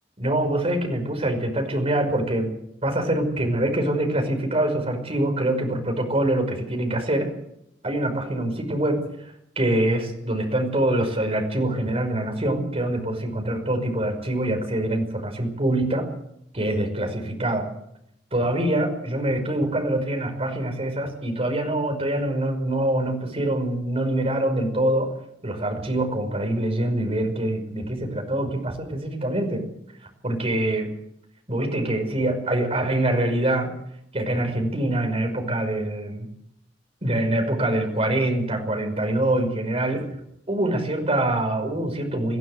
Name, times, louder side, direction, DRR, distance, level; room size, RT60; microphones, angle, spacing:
voice 1, 0.2-2.5 2.8-7.3 7.8-9.0 9.6-16.1 16.5-17.7 18.3-25.1 25.4-29.7 30.0-30.9 31.5-33.8 34.1-36.3 37.0-40.1 40.5-42.4, right 1 dB, 35° right, 4 dB, 5.5 m, -24 dB
22.5 x 16.0 x 7.9 m, 0.77 s
head